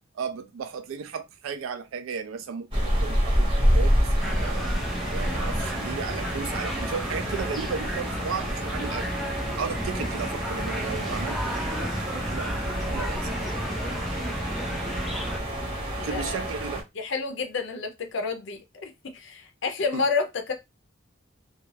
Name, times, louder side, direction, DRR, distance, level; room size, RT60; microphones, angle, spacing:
voice 1, 0.2-4.7 5.1-9.2 9.5-11.9 12.1-13.2 16.0-16.8 19.9-20.0, right 6 dB, 80° right, 0.4 m, -35 dB
sound 1, 2.7-16.8, equal, 25° right, 0.8 m, -28 dB
sound 2, 4.2-15.4, equal, ahead, 0.3 m, -33 dB
voice 2, 15.6-16.5 16.9-20.5, left 4 dB, 65° left, 0.5 m, -30 dB
2.3 x 2.3 x 3.1 m
head